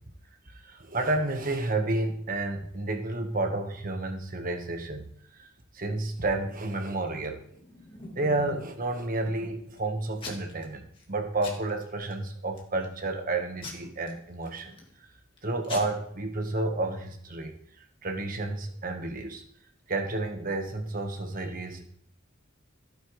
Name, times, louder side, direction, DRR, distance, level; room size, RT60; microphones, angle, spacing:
voice 1, 0.5-5.5 5.7-7.4 8.1-14.8 15.4-17.6 18.0-19.4 19.9-21.9, right 2 dB, 45° right, 5 dB, 1.5 m, -31 dB
Packing tape duct tape / Tearing, 7.4-8.8 9.3-9.8 10.2-10.6 11.0-11.1 11.4-12.1 12.6-12.9 13.6-14.9 15.4-15.5 15.6-15.8, left 2 dB, 25° left, 2.5 m, -42 dB
16.0 x 9.8 x 3.3 m, 0.66 s
head